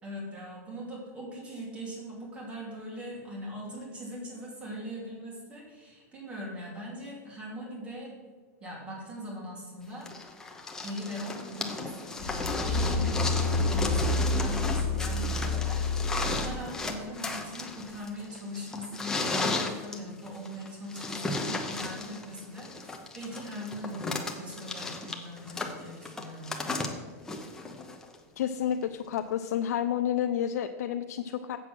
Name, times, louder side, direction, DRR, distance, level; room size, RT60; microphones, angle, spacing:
voice 1, 0.0-8.1 8.6-10.1 10.8-26.9, equal, 15° right, -4 dB, 2.7 m, -40 dB
sound 1, 10.1-28.1 29.2-29.3, left 3 dB, 5° left, 0.8 m, -35 dB
sound 2, 12.2-16.6 17.1-17.2, left 3 dB, 55° left, 1.5 m, -29 dB
voice 2, 28.4-31.6, left 10 dB, 80° left, 7 dB, 0.5 m, -30 dB
7.5 x 7.4 x 6.1 m, 1.5 s
supercardioid pair, 165°, 9 cm